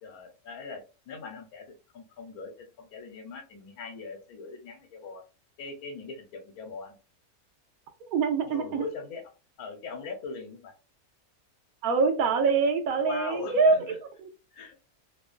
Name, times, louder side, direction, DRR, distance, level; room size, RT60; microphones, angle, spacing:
voice 1, 0.0-5.2 5.6-7.0 8.5-9.3 9.6-10.7 13.0-14.0 14.5-14.8, left 4 dB, 75° left, 1.2 m, -41 dB
voice 2, 8.1-8.8 11.8-14.3, right 4 dB, 75° right, 1.0 m, -25 dB
2.9 x 2.1 x 2.4 m
omnidirectional pair, 1.6 m